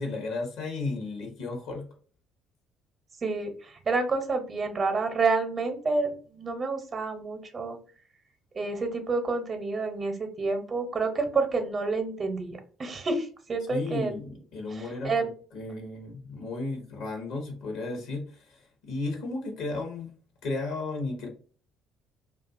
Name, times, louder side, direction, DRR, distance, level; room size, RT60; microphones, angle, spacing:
voice 1, 0.0-1.8 13.7-20.1 20.4-21.3, left 3 dB, 70° left, 2 dB, 0.8 m, -34 dB
voice 2, 3.2-7.8 8.5-14.1 14.7-15.3, right 3 dB, 40° right, 6 dB, 0.7 m, -29 dB
2.4 x 2.3 x 2.4 m, 0.41 s
hypercardioid pair, 55°, 0 cm